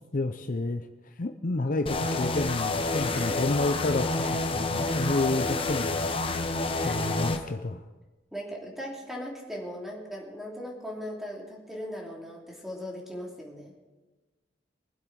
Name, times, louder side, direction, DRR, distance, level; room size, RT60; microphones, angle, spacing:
voice 1, 0.1-6.1 6.8-7.8, left 2 dB, 45° left, 7 dB, 0.6 m, -30 dB
sound 1, 1.9-7.4, left 2 dB, 30° left, 1.0 m, -29 dB
voice 2, 2.9-3.4 6.7-7.0 8.3-13.7, equal, ahead, -2 dB, 2.9 m, -39 dB
23.0 x 8.0 x 4.7 m, 1.2 s
head